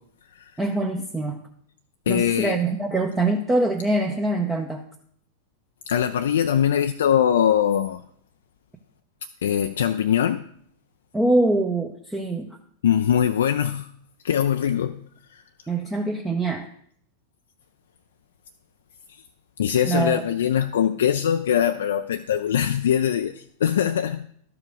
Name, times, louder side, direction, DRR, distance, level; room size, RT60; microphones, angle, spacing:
voice 1, 0.6-1.4 2.1-4.8 11.1-12.6 15.7-16.7 19.8-20.2, right 2 dB, 10° right, 0.7 m, -24 dB
voice 2, 2.1-2.6 5.9-8.0 9.4-10.5 12.8-13.9 14.2-15.0 15.3-15.4 19.6-24.3, left 9 dB, 60° left, 0.3 m, -22 dB
12.0 x 4.9 x 5.0 m
figure-of-eight pair, 90°, 0 cm